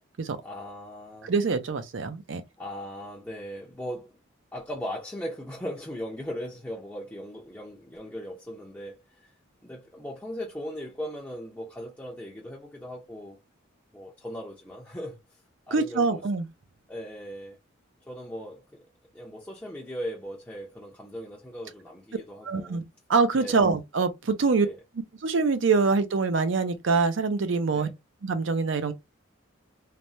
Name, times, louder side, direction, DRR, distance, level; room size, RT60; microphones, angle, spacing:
voice 1, 0.4-1.3 2.6-4.1 4.5-9.3 9.6-13.4 13.9-15.4 15.7-16.3 16.9-17.6 18.1-18.9 19.1-22.8 23.4-23.7 24.6-24.8 27.7-27.9, equal, 10° left, 0.5 m, -38 dB
voice 2, 1.2-2.4 15.7-16.5 22.4-22.8 23.1-24.7 25.2-27.9 28.2-28.9, right 4 dB, 70° right, 0.5 m, -24 dB
3.2 x 2.1 x 2.6 m
head